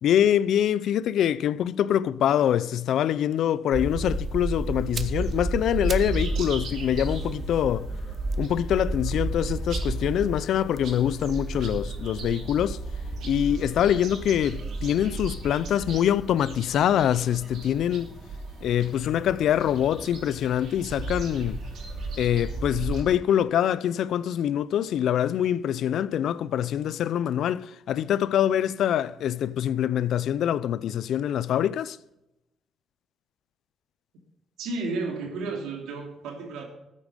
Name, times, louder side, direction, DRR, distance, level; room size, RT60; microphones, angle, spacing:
voice 1, 0.0-7.9 8.4-12.8 13.2-18.1 18.6-21.6 22.2-32.0, left 10 dB, 75° left, 0.5 m, -24 dB
sound 1, 3.7-23.0, right 2 dB, 75° right, 4.2 m, -33 dB
sound 2, 4.8-6.3 6.6-9.8 10.6-12.7 13.0-13.1, right 5 dB, 40° right, 0.9 m, -44 dB
Zipper Pad Synth Line, 5.8-23.2, right 1 dB, 10° right, 5.4 m, -51 dB
voice 2, 34.6-36.6, right 3 dB, 90° right, 3.2 m, -32 dB
14.0 x 8.4 x 5.2 m
cardioid pair, 90°, 0 cm